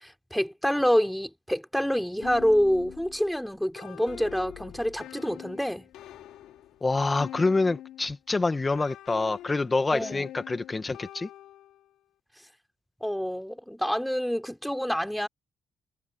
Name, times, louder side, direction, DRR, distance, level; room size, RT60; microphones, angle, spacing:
voice 1, 0.0-5.9 9.9-10.3 13.0-15.3, equal, ahead, 3.8 m, -27 dB
sound 1, 2.2-8.2 8.7-12.0, left 13 dB, 85° left, 6.0 m, -45 dB
voice 2, 6.8-11.3, left 3 dB, 25° left, 2.1 m, -26 dB
cardioid pair, 90°, 0 cm